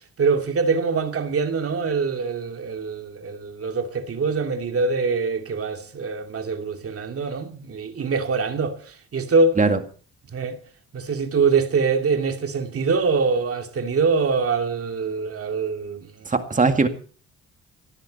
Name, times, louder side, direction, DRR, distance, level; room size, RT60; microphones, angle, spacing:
voice 1, 0.2-8.8 9.1-9.5 10.3-10.6 10.9-16.1, right 4 dB, 50° right, 2.6 m, -24 dB
voice 2, 16.3-16.9, right 4 dB, 25° right, 2.1 m, -19 dB
18.5 x 13.0 x 4.3 m
cardioid pair, 90°, 30 cm